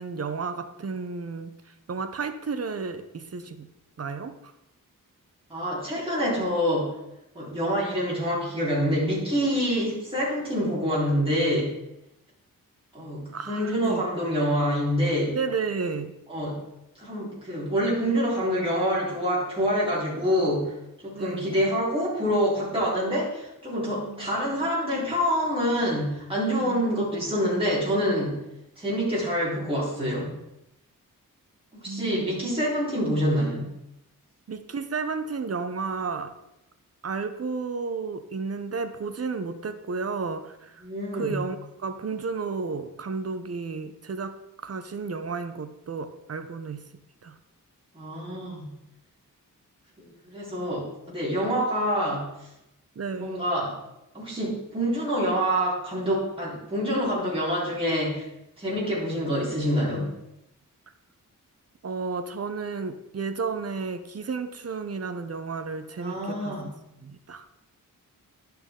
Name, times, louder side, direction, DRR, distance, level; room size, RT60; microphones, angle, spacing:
voice 1, 0.0-3.7 4.0-4.5 13.3-14.1 15.3-16.1 21.1-21.6 24.1-24.3 24.6-24.7 26.5-26.8 31.8-32.4 34.5-36.3 37.0-40.8 41.1-44.3 44.6-46.9 47.2-47.4 53.0-53.4 61.8-66.7 67.0-67.5, right 4 dB, 45° right, 9 dB, 0.8 m, -32 dB
voice 2, 5.5-6.9 7.3-11.7 12.9-15.4 16.3-16.6 17.0-20.7 21.0-28.4 28.8-30.3 31.7-33.7 40.8-41.4 47.9-48.7 50.0-52.2 53.2-53.8 54.1-58.3 58.6-60.1 66.0-66.7, equal, 15° right, -8 dB, 3.8 m, -26 dB
11.5 x 5.8 x 3.7 m, 0.87 s
wide cardioid pair, 100°, 33 cm